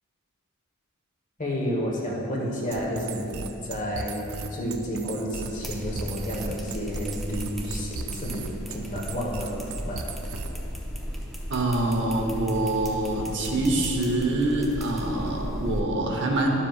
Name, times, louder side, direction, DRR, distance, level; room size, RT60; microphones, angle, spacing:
voice 1, 1.4-9.6 9.9-10.1, equal, 35° left, -3 dB, 1.2 m, -31 dB
sound 1, 2.7-10.7, right 5 dB, 70° right, 0.5 m, -37 dB
sound 2, 5.4-15.8, equal, ahead, 0.6 m, -36 dB
voice 2, 11.5-16.5, right 2 dB, 55° right, 0 dB, 0.9 m, -25 dB
12.0 x 7.3 x 2.4 m, 3.0 s
head